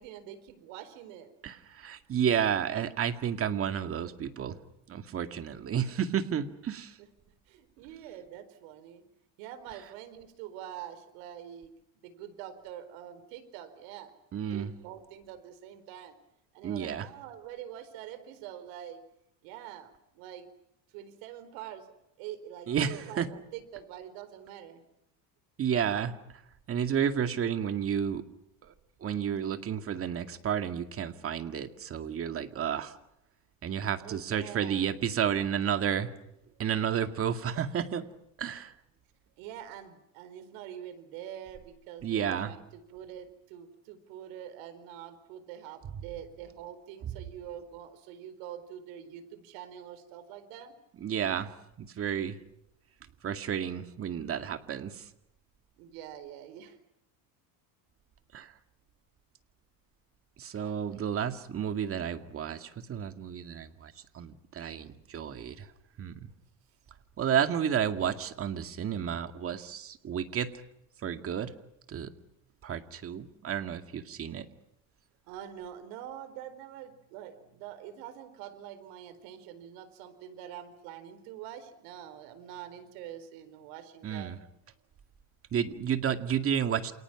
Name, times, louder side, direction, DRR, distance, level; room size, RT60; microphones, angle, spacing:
voice 1, 0.0-1.3 7.0-7.1 7.5-9.0 9.4-14.1 14.5-16.2 16.5-19.0 19.4-20.5 20.9-21.9 22.2-24.8 34.0-34.9 39.4-50.7 55.8-56.8 60.6-61.0 75.3-84.3, right 10 dB, 80° right, 12 dB, 4.3 m, -45 dB
voice 2, 1.4-4.6 4.9-6.9 14.3-14.7 16.6-17.1 22.7-23.3 25.6-26.1 26.7-28.2 28.6-28.7 29.0-33.0 33.6-36.1 36.6-38.0 38.4-38.7 42.0-42.5 51.0-51.5 51.8-52.4 53.2-55.0 58.3-58.5 60.4-65.7 66.0-66.1 67.2-70.5 71.0-71.5 71.9-72.1 72.6-74.5 84.0-84.4 85.5-86.9, right 8 dB, 35° right, 8 dB, 2.2 m, -31 dB
29.0 x 28.0 x 6.0 m, 0.82 s
cardioid pair, 135°, 40 cm